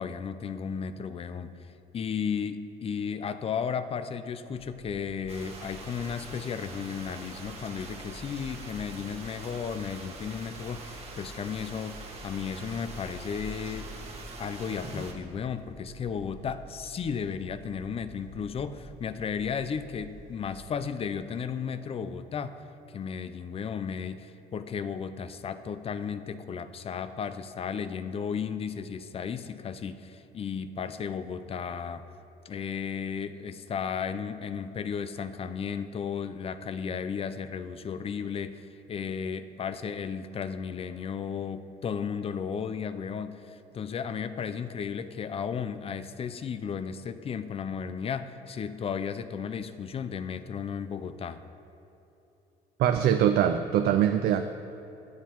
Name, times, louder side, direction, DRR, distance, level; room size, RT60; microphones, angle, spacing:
voice 1, 0.0-1.5 1.9-13.9 14.4-22.6 22.9-32.0 32.4-51.4, left 6 dB, 35° left, 12 dB, 0.4 m, -34 dB
sound 1, 4.5-20.6, equal, 80° right, 1.3 m, -49 dB
sound 2, 5.3-15.1, right 3 dB, 40° right, 1.3 m, -44 dB
voice 2, 52.8-54.5, right 9 dB, 65° right, 8 dB, 0.4 m, -23 dB
16.0 x 7.1 x 3.0 m, 3.0 s
cardioid pair, 110°, 17 cm